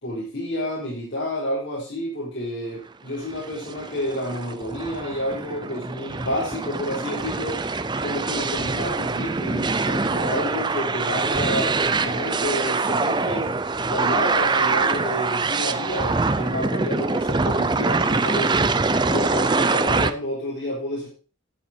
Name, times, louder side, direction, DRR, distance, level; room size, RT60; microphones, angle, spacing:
voice 1, 0.0-7.6 8.0-11.8 12.0-18.6 18.9-21.1, equal, 55° left, -6 dB, 4.5 m, -30 dB
sound 1, 3.3-20.1, right 3 dB, 20° right, 0.5 m, -24 dB
11.5 x 7.5 x 4.4 m, 0.36 s
head